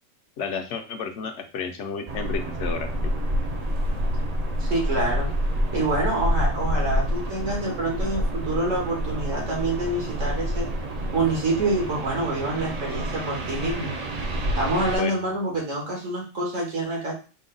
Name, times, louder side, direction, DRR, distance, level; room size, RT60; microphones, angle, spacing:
voice 1, 0.4-3.1 15.0-15.2, left 5 dB, 70° left, 5 dB, 0.9 m, -32 dB
sound 1, 2.1-15.0, equal, 55° right, 0.4 m, -28 dB
voice 2, 4.6-5.3 5.7-10.7 11.1-14.0 14.6-17.1, right 2 dB, 85° right, -3 dB, 1.9 m, -27 dB
5.2 x 2.1 x 3.8 m, 0.34 s
omnidirectional pair, 1.3 m